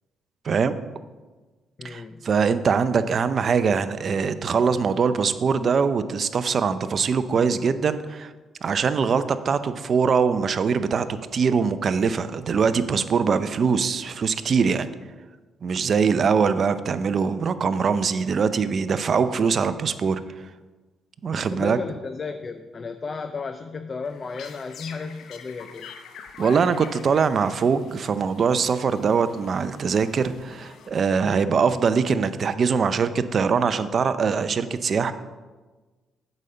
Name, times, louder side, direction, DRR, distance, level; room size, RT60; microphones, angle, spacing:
voice 1, 0.4-0.8 1.8-8.3 8.6-14.9 15.6-20.2 21.2-21.8 26.4-35.1, right 5 dB, 50° right, 12 dB, 0.5 m, -22 dB
voice 2, 1.8-2.2 21.4-25.9, left 4 dB, 40° left, 9 dB, 0.4 m, -34 dB
sound 1, 24.0-31.3, left 6 dB, 75° left, 0.8 m, -45 dB
8.2 x 5.1 x 6.7 m, 1.3 s
cardioid pair, 90°, 0 cm